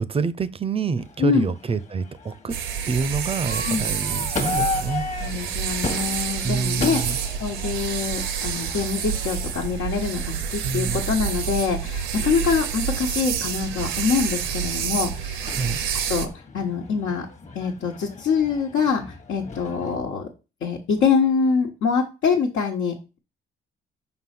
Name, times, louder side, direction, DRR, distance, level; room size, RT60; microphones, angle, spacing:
voice 1, 0.0-2.6 2.9-5.0 6.4-7.2 10.6-11.0 15.5-15.8, right 5 dB, 30° right, 0.6 m, -27 dB
Crowd / Fireworks, 1.0-20.0, left 4 dB, 35° left, 1.2 m, -36 dB
voice 2, 1.2-1.5 3.6-3.9 5.2-15.5 16.1-16.3 16.5-17.3 17.5-20.3 20.6-23.2, left 5 dB, 80° left, 1.3 m, -25 dB
sound 1, 2.5-16.3, right 8 dB, 80° right, 0.8 m, -28 dB
5.5 x 3.9 x 5.8 m
cardioid pair, 90°, 20 cm